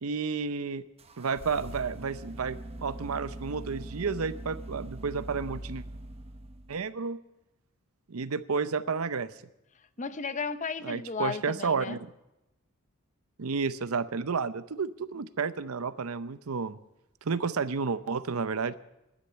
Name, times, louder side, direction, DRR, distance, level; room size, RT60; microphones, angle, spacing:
voice 1, 0.0-0.8 1.2-5.8 6.7-7.2 8.1-9.3 10.8-12.1 13.4-16.8 17.2-18.7, right 5 dB, 85° right, 14 dB, 0.7 m, -31 dB
sound 1, 1.0-6.9, right 1 dB, 30° right, 0.8 m, -42 dB
voice 2, 10.0-12.0, left 5 dB, 35° left, 13 dB, 0.6 m, -34 dB
11.5 x 10.0 x 9.3 m, 0.91 s
head